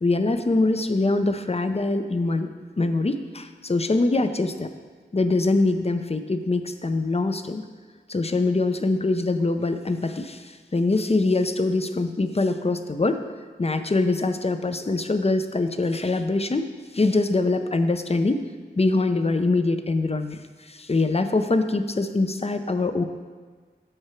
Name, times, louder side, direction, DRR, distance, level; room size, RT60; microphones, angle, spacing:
voice 1, 0.0-2.5 2.8-4.7 5.1-7.6 8.1-13.2 13.6-16.7 16.9-18.4 18.8-23.0, left 2 dB, 35° left, 8 dB, 0.5 m, -23 dB
7.8 x 4.7 x 4.5 m, 1.5 s
wide cardioid pair, 40°, 18 cm